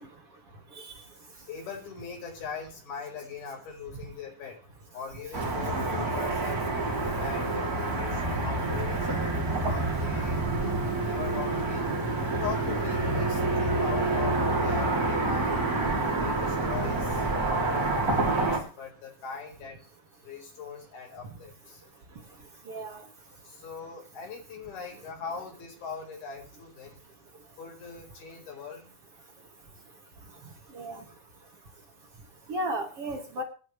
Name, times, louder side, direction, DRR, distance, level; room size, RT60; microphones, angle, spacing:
voice 1, 1.5-4.6 4.9-6.6 7.1-10.8 11.0-11.9 12.4-15.7 16.2-19.8 20.2-21.8 23.4-27.0 27.6-28.9, left 5 dB, 85° left, 2 dB, 6.4 m, -41 dB
Car passing by / Traffic noise roadway noise, 5.3-18.6, right 2 dB, 25° right, 3.1 m, -28 dB
voice 2, 5.6-6.1 22.7-23.0 30.7-31.0 32.5-33.4, right 1 dB, 45° right, 3 dB, 2.3 m, -34 dB
25.5 x 10.5 x 3.3 m, 0.38 s
omnidirectional pair, 4.2 m